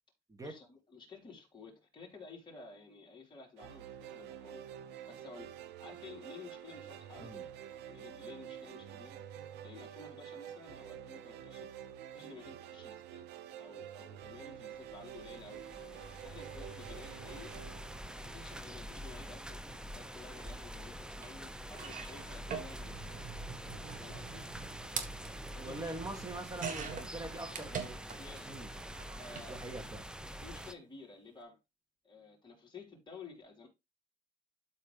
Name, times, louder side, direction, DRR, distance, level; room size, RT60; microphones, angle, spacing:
voice 1, 0.4-4.7 5.1-5.5 5.8-7.5 7.8-9.2 9.6-11.7 12.1-13.2 13.6-17.5 18.2-23.2 24.0-24.4 25.5-25.9 28.2-28.5 29.2-29.6 30.4-31.6 32.0-33.7, left 4 dB, 25° left, 4.1 m, -53 dB
sound 1, 3.6-18.8, right 10 dB, 90° right, 0.9 m, -48 dB
sound 2, 14.7-30.7, equal, 5° right, 0.7 m, -46 dB
sound 3, 21.2-21.3 21.7-28.4 28.7-29.5 30.5-30.7 30.9-31.0, right 6 dB, 50° right, 1.8 m, -44 dB
voice 2, 25.6-28.0 28.5-28.7 29.5-30.0, right 2 dB, 20° right, 2.5 m, -43 dB
12.5 x 4.2 x 3.5 m
cardioid pair, 110°, 17 cm